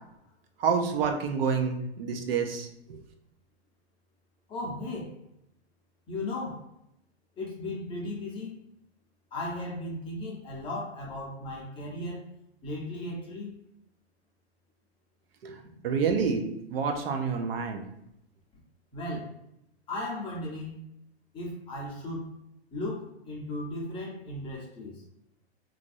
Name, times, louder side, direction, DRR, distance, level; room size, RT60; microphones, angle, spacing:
voice 1, 0.6-3.0 15.4-16.4 16.7-17.8, right 5 dB, 60° right, 4 dB, 0.6 m, -28 dB
voice 2, 4.5-5.2 6.1-6.7 7.4-8.6 9.3-12.2 12.6-13.5 18.9-19.4 19.9-20.8 21.3-22.3 22.7-25.0, left 1 dB, 15° left, -3 dB, 0.7 m, -36 dB
3.1 x 2.5 x 2.6 m, 0.81 s
hypercardioid pair, 130°, 33 cm